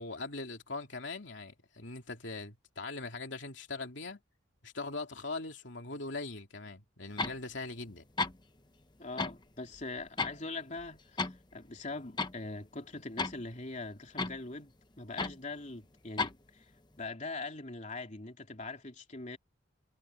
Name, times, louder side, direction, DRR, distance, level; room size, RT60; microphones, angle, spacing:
voice 1, 0.0-4.2 4.6-8.1, left 3 dB, 65° left, 3.1 m, -41 dB
sound 1, 7.2-7.4 7.9-8.0 8.2-8.4 9.2-9.4 9.7-10.4 10.8-11.4 11.7-11.8 12.2-12.4 13.2-13.5 14.2-14.4 15.2-15.4 16.2-16.4, left 3 dB, 20° left, 0.9 m, -33 dB
voice 2, 9.0-16.6 17.0-19.4, left 3 dB, 40° left, 3.2 m, -42 dB
head